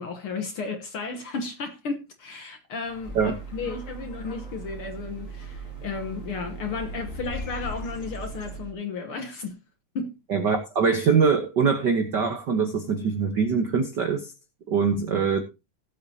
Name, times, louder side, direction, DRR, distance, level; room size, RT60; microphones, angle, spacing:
voice 1, 0.0-9.6 9.9-10.1, left 4 dB, 60° left, 1.6 m, -33 dB
sound 1, 2.8-8.6, left 4 dB, 30° left, 2.0 m, -42 dB
sound 2, 3.0-8.7, right 8 dB, 25° right, 3.3 m, -40 dB
voice 2, 10.3-14.3 14.7-15.4, right 5 dB, 70° right, 1.0 m, -23 dB
18.5 x 8.0 x 2.8 m
omnidirectional pair, 3.7 m